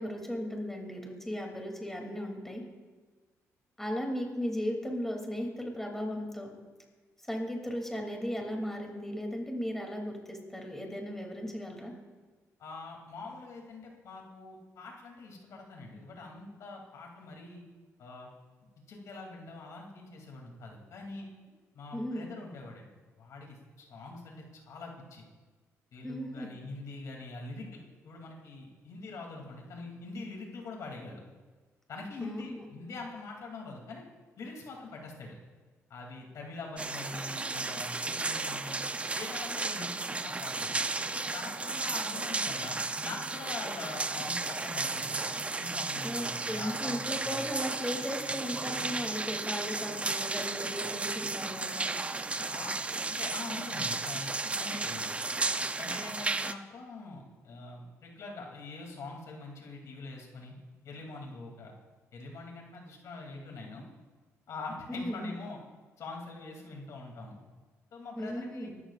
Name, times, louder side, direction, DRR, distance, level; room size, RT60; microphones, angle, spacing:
voice 1, 0.0-2.6 3.8-6.5 7.3-11.9 21.9-22.3 26.0-26.5 32.2-32.7 46.0-51.9 64.9-65.3 68.2-68.8, equal, 5° left, 1 dB, 2.9 m, -36 dB
voice 2, 12.6-17.6 18.0-18.3 18.9-21.3 21.7-22.9 23.2-25.3 25.9-31.2 31.9-34.0 34.4-35.4 35.9-38.8 39.1-40.7 41.1-45.2 45.6-47.4 52.5-52.7 53.1-55.1 55.8-60.5 60.8-61.7 62.1-63.9 64.5-65.6 66.0-67.4 67.9-68.7, left 3 dB, 70° left, 0 dB, 2.9 m, -44 dB
sound 1, 36.8-56.5, right 3 dB, 20° right, 0.6 m, -34 dB
23.5 x 13.0 x 2.5 m, 1.3 s
cardioid pair, 90°, 6 cm